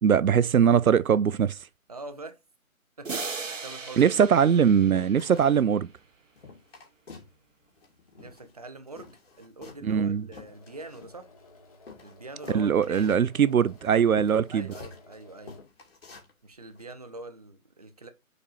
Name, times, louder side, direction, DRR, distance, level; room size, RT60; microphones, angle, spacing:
voice 1, 0.0-1.6 4.0-5.9 9.8-10.2 12.5-14.7, right 7 dB, 80° right, 0.6 m, -21 dB
voice 2, 1.9-2.4 3.0-3.1 3.4-4.0 8.2-11.3 12.0-13.2 14.5-15.6 16.4-18.1, right 2 dB, 30° right, 0.7 m, -44 dB
sound 1, 3.0-5.7, right 4 dB, 65° right, 1.3 m, -38 dB
sound 2, 3.5-3.7 4.1-4.6 4.9-5.7 6.0-6.1 6.4-7.4 7.6-8.6 8.9-11.4 11.9-15.2 15.5-16.3 16.7-16.9, left 4 dB, 45° left, 2.7 m, -47 dB
sound 3, 10.4-15.6, left 3 dB, 25° left, 1.6 m, -55 dB
6.5 x 4.2 x 4.9 m
figure-of-eight pair, 155°, 42 cm